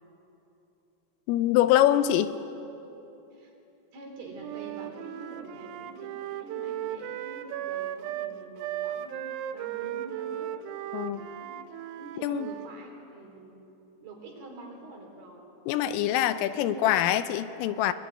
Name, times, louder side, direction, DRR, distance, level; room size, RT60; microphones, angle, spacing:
voice 1, 1.3-2.3 10.9-11.2 12.2-12.5 15.7-17.9, left 12 dB, 85° left, 12 dB, 3.4 m, -24 dB
voice 2, 3.9-10.6 11.1-11.5 11.9-13.5 14.0-15.5 16.3-17.0 17.7-17.9, right 2 dB, 50° right, 2 dB, 5.4 m, -46 dB
Wind instrument woodwind instrument, 4.4-12.7, right 12 dB, 90° right, 3.6 m, -36 dB
22.5 x 22.0 x 9.8 m, 2.9 s
omnidirectional pair, 5.9 m